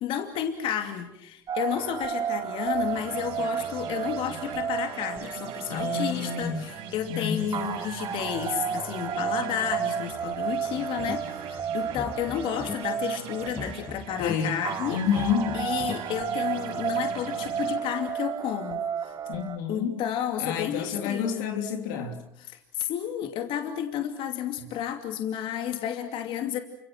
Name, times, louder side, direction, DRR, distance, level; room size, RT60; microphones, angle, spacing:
voice 1, 0.0-15.0 15.5-19.1 19.7-21.4 22.4-26.6, left 10 dB, 60° left, 2.8 m, -32 dB
sound 1, 1.5-19.6, right 7 dB, 40° right, 4.0 m, -32 dB
sound 2, 2.7-17.7, right 6 dB, 70° right, 6.0 m, -42 dB
voice 2, 5.7-6.7 7.1-7.6 14.2-14.6 14.9-15.7 19.3-20.0 20.4-22.2 24.6-24.7, left 7 dB, 80° left, 3.3 m, -29 dB
sound 3, 10.9-11.4 11.8-12.7 13.4-14.3 15.0-15.9, left 6 dB, 35° left, 1.6 m, -39 dB
29.5 x 26.5 x 6.3 m
hypercardioid pair, 80°, 10 cm